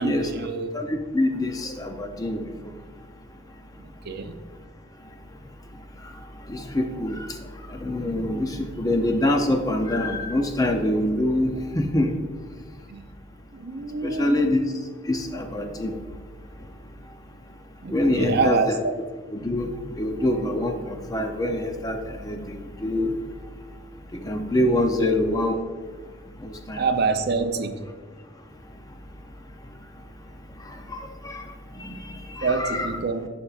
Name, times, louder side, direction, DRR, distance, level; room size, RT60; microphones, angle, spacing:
voice 1, 0.0-0.7 3.8-4.4 12.9-13.0 13.5-14.5 17.8-18.9 24.9-25.2 26.8-27.8 30.8-30.9 32.4-33.3, right 4 dB, 50° right, 8 dB, 0.5 m, -26 dB
voice 2, 0.7-2.4 6.5-7.2 7.8-11.5 11.7-12.1 14.0-14.6 15.1-15.9 17.9-18.8 19.3-19.7 20.0-22.0 22.2-23.1 24.2-25.6 26.4-26.8 30.9-31.0 31.2-31.4 31.8-32.0 32.4-33.0, left 1 dB, 15° left, 5 dB, 0.5 m, -25 dB
11.5 x 5.3 x 2.4 m, 1.4 s
head